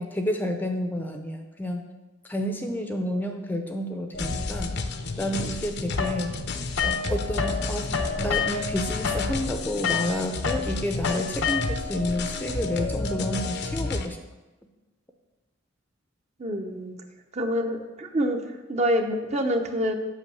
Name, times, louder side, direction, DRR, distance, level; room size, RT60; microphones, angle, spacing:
voice 1, 0.0-1.9 2.2-4.8 5.2-6.3 6.8-14.2, left 1 dB, 10° left, 4 dB, 0.6 m, -30 dB
sound 1, 4.1-14.1, left 3 dB, 55° left, 0.7 m, -31 dB
sound 2, 6.0-7.6 7.9-12.0, left 6 dB, 80° left, 0.9 m, -29 dB
voice 2, 16.4-17.0 17.3-18.4 18.7-19.9, equal, 35° right, 4 dB, 0.9 m, -26 dB
8.2 x 5.6 x 7.0 m, 1.1 s
head